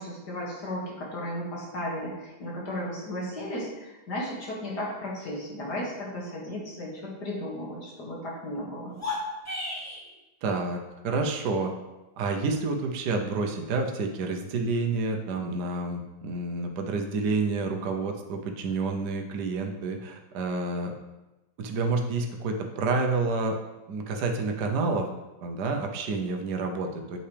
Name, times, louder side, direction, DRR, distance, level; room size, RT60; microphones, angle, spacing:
voice 1, 0.0-9.0, left 1 dB, 65° left, -4 dB, 2.7 m, -35 dB
sound 1, 8.9-10.1, left 2 dB, 10° left, 1.4 m, -33 dB
voice 2, 10.4-11.7 12.2-20.9 21.6-23.6 23.9-25.1 25.4-27.2, right 3 dB, 70° right, 3 dB, 1.4 m, -29 dB
8.4 x 7.1 x 3.4 m, 1.1 s
omnidirectional pair, 1.9 m